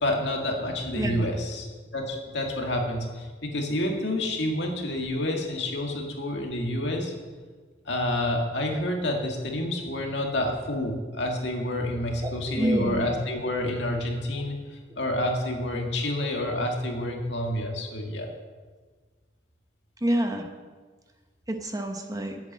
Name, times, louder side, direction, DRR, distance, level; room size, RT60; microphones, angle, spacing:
voice 1, 0.0-7.1 7.9-18.3, left 1 dB, 65° left, 1 dB, 2.1 m, -29 dB
voice 2, 12.2-13.1 20.0-20.5 21.5-22.4, right 1 dB, 20° right, 4 dB, 1.0 m, -27 dB
11.0 x 8.3 x 7.5 m, 1.4 s
head